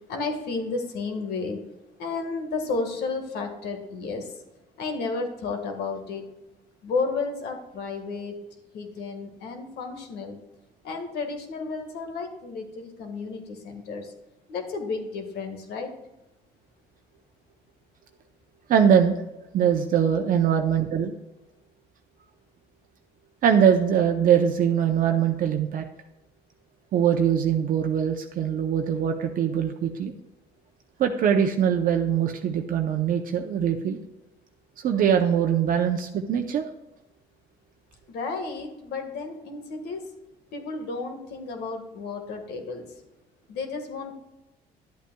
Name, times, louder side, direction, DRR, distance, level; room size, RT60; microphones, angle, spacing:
voice 1, 0.1-1.6 2.0-4.3 4.8-6.2 6.8-8.3 8.7-10.4 10.8-14.1 14.5-15.9 38.1-40.0 40.5-42.8 43.5-44.1, left 4 dB, 75° left, 5 dB, 1.6 m, -32 dB
voice 2, 18.7-19.1 19.5-21.1 23.4-25.9 26.9-30.1 31.0-34.0 34.8-36.7, right 8 dB, 55° right, 4 dB, 0.7 m, -22 dB
11.5 x 8.3 x 2.3 m, 0.98 s
cardioid pair, 110°, 17 cm